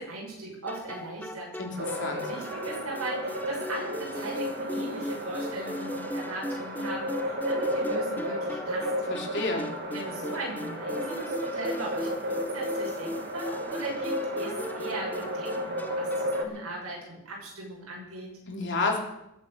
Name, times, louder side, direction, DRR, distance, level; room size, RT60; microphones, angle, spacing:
voice 1, 0.0-1.5 2.3-8.9 9.9-18.3, right 2 dB, 75° right, -2 dB, 6.4 m, -38 dB
sound 1, 0.7-16.6, left 1 dB, 10° left, 0.7 m, -38 dB
voice 2, 1.6-2.3 9.1-9.7 18.5-19.0, left 3 dB, 55° left, 1 dB, 3.3 m, -30 dB
sound 2, 1.8-16.4, equal, 50° right, 2.1 m, -33 dB
21.5 x 8.4 x 6.6 m, 0.88 s
head